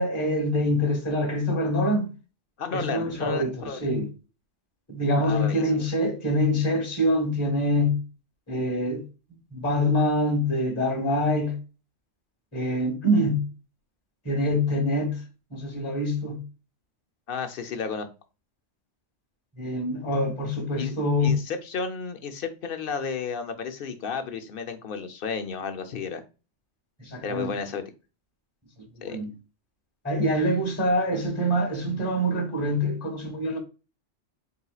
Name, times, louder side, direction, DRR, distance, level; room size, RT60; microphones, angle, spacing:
voice 1, 0.0-2.0 2.7-4.1 4.9-8.0 8.5-9.0 9.5-11.6 12.5-13.5 14.2-15.2 15.5-16.4 19.6-21.3 27.0-27.5 29.0-29.3 30.0-33.6, left 1 dB, 15° left, 1.2 m, -25 dB
voice 2, 2.6-3.9 5.2-5.9 17.3-18.1 20.8-20.9 21.2-26.2 27.2-27.8 29.0-29.2, left 5 dB, 55° left, 0.8 m, -32 dB
4.2 x 3.9 x 2.4 m
omnidirectional pair, 1.2 m